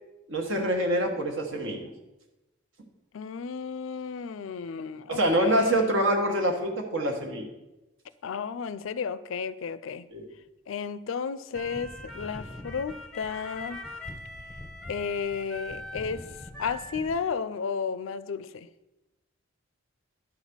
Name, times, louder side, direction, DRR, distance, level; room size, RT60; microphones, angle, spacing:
voice 1, 0.3-1.9 5.1-7.5 10.1-10.3, right 1 dB, 70° right, 1.4 m, -26 dB
voice 2, 3.1-5.9 8.2-10.1 10.7-13.8 14.9-16.3 16.6-18.7, left 6 dB, 75° left, 0.4 m, -33 dB
sound 1, 11.5-17.2, left 1 dB, 5° left, 0.7 m, -41 dB
11.0 x 4.1 x 6.1 m
head